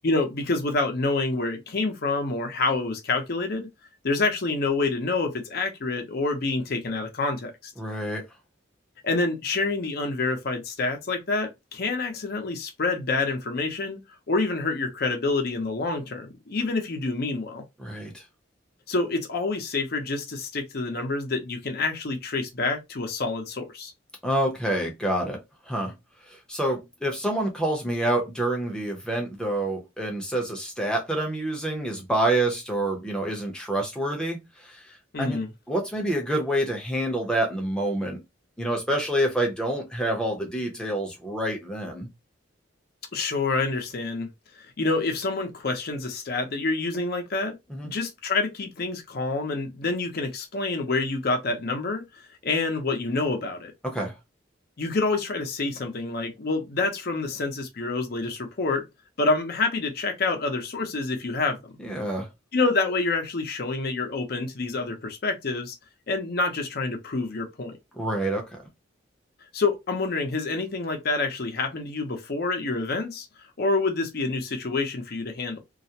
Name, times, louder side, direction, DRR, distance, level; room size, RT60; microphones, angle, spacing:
voice 1, 0.0-3.7 4.0-7.7 9.0-14.0 14.3-17.6 18.9-23.9 35.1-35.5 43.1-44.3 44.5-47.6 47.8-53.7 54.8-58.8 59.2-61.7 62.5-65.8 66.1-67.7 69.5-73.3 73.6-75.6, left 3 dB, 55° left, 0.6 m, -27 dB
voice 2, 7.8-8.2 17.8-18.2 24.2-25.4 25.7-25.9 26.5-34.8 35.2-35.4 35.7-38.2 38.6-42.1 47.7-47.9 53.8-54.1 61.8-62.3 67.9-68.6, right 1 dB, 5° left, 0.6 m, -27 dB
2.3 x 2.1 x 2.7 m
head